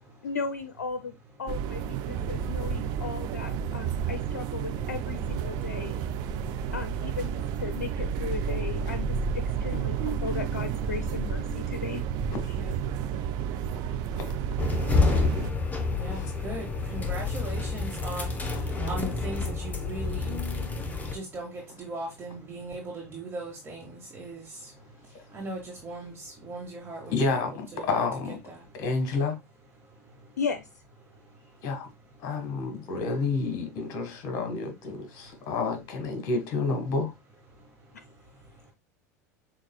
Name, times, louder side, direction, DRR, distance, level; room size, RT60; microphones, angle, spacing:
voice 1, 0.2-6.1 6.7-9.1 9.6-12.0 30.4-30.7 37.9-38.0, left 5 dB, 85° left, 0.4 m, -36 dB
sound 1, 1.5-15.5, right 7 dB, 50° right, 0.5 m, -31 dB
voice 2, 12.5-14.2 15.7-27.9 28.5-28.8 29.8-30.4 31.1-31.8 32.1-32.4 35.2-35.5 37.5-38.7, right 2 dB, 25° right, 1.3 m, -41 dB
sound 2, 14.6-21.1, left 3 dB, 15° left, 0.8 m, -28 dB
voice 3, 15.1-15.5 16.1-16.3 18.7-18.9 27.1-28.4 28.8-29.4 31.6-31.9 32.2-37.1, left 3 dB, 50° left, 1.3 m, -30 dB
6.4 x 2.4 x 2.2 m
hypercardioid pair, 90°, 9 cm